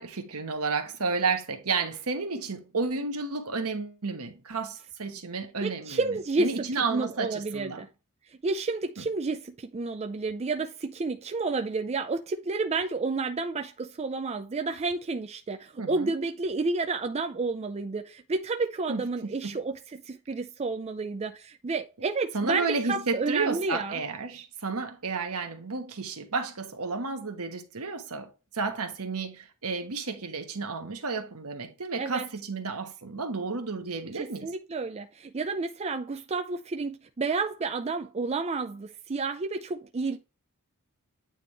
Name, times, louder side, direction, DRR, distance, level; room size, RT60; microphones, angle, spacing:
voice 1, 0.0-6.0 6.4-7.8 9.0-9.1 15.8-16.1 18.9-19.6 22.3-34.5, right 4 dB, 70° right, 1.2 m, -32 dB
voice 2, 5.6-7.9 8.4-24.0 32.0-32.3 34.1-40.2, right 3 dB, 30° right, 0.4 m, -30 dB
9.0 x 3.5 x 3.3 m
head